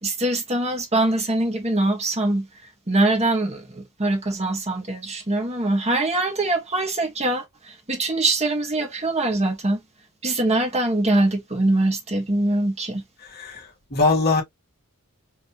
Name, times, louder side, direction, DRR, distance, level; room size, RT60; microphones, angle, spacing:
voice 1, 0.0-2.5 2.9-9.8 10.2-13.0, right 2 dB, 30° right, 1.5 m, -23 dB
voice 2, 13.2-14.4, left 3 dB, 45° left, 2.6 m, -22 dB
4.9 x 3.4 x 3.0 m
head